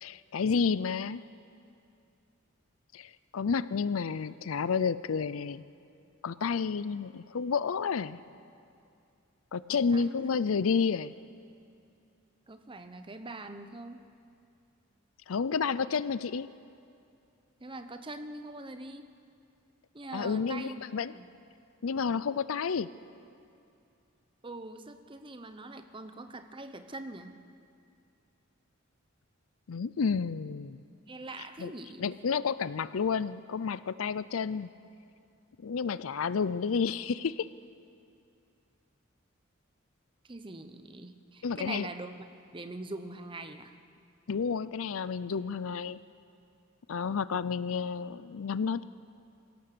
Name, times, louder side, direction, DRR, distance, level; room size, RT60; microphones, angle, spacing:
voice 1, 0.0-1.2 2.9-5.6 6.2-8.2 9.5-11.1 15.3-16.5 20.1-21.1 21.8-22.9 29.7-30.8 31.6-31.7 32.0-34.7 35.6-37.5 41.4-41.9 44.3-46.0 46.9-48.8, left 5 dB, 85° left, 17 dB, 0.5 m, -30 dB
voice 2, 9.7-10.2 12.5-14.1 17.6-19.1 19.9-21.3 24.4-27.4 31.1-32.2 40.2-43.7, right 2 dB, 25° right, 8 dB, 0.9 m, -43 dB
25.0 x 16.5 x 6.9 m, 2.5 s
head